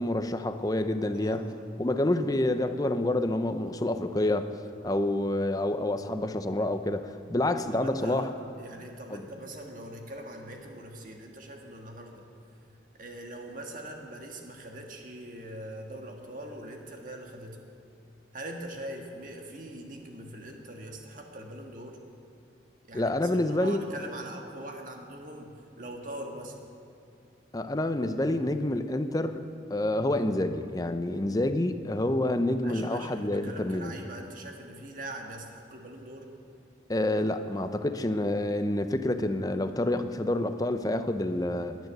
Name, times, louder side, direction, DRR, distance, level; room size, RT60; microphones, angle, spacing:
voice 1, 0.0-1.5 1.8-4.5 4.8-8.3 9.1-9.2 22.9-23.9 27.5-29.4 29.7-33.9 36.9-41.8, left 1 dB, 20° left, 9 dB, 0.6 m, -28 dB
voice 2, 1.1-1.5 7.7-8.3 8.6-12.3 13.0-17.6 18.3-22.0 22.9-23.1 23.5-26.6 32.6-36.3, right 1 dB, 45° right, 2 dB, 1.7 m, -42 dB
11.0 x 10.5 x 9.8 m, 2.5 s
head